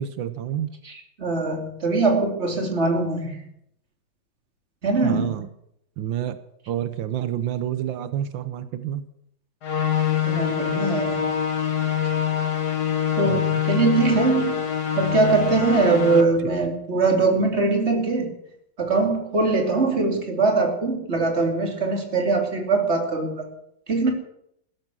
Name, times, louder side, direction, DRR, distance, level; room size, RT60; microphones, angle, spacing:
voice 1, 0.0-0.7 5.0-5.5 6.0-6.4 6.7-9.1 13.3-13.6, right 10 dB, 90° right, 12 dB, 1.6 m, -28 dB
voice 2, 0.9-3.4 4.8-5.3 10.2-11.3 13.2-14.6 15.0-18.3 18.8-23.5 23.9-24.1, right 3 dB, 35° right, 3 dB, 3.0 m, -22 dB
sound 1, 9.6-16.2, left 9 dB, 60° left, 1.9 m, -24 dB
16.0 x 13.5 x 6.3 m, 0.73 s
omnidirectional pair, 2.0 m